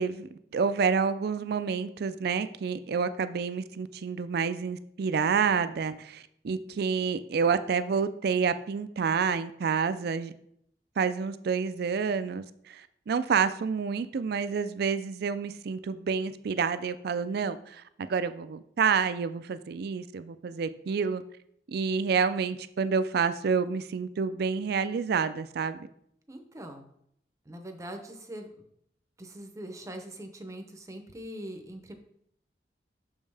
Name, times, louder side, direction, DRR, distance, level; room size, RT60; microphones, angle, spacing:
voice 1, 0.0-10.3 11.0-21.2 21.7-25.8, right 6 dB, 60° right, 13 dB, 0.4 m, -28 dB
voice 2, 26.3-26.9 27.5-28.5 29.2-31.9, right 1 dB, 20° right, 5 dB, 0.6 m, -42 dB
6.3 x 5.3 x 3.4 m, 0.72 s
head